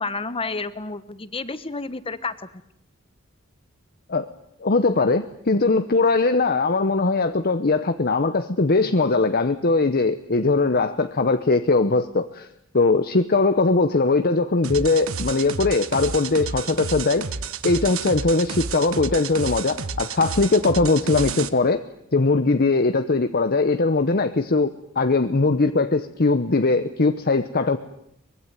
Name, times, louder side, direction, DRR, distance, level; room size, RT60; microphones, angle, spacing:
voice 1, 0.0-2.5, left 3 dB, 25° left, 13 dB, 1.2 m, -30 dB
voice 2, 4.6-12.5 12.7-17.2 17.6-21.8 22.1-27.8, left 3 dB, 45° left, 9 dB, 0.9 m, -20 dB
sound 1, 14.6-21.5, right 5 dB, 85° right, 1.3 m, -31 dB
23.5 x 21.5 x 9.2 m, 0.77 s
head